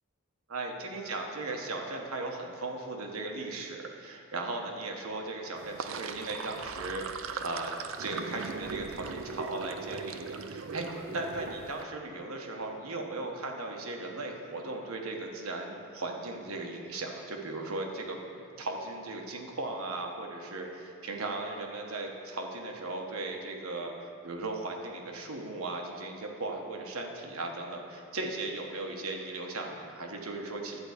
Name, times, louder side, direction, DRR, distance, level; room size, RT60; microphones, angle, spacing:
voice 1, 0.5-7.0 7.4-23.9 24.2-30.8, right 2 dB, 85° right, 1 dB, 1.3 m, -37 dB
Sink (filling or washing), 5.6-11.8, right 5 dB, 65° right, 0.5 m, -39 dB
11.0 x 4.6 x 8.1 m, 2.4 s
head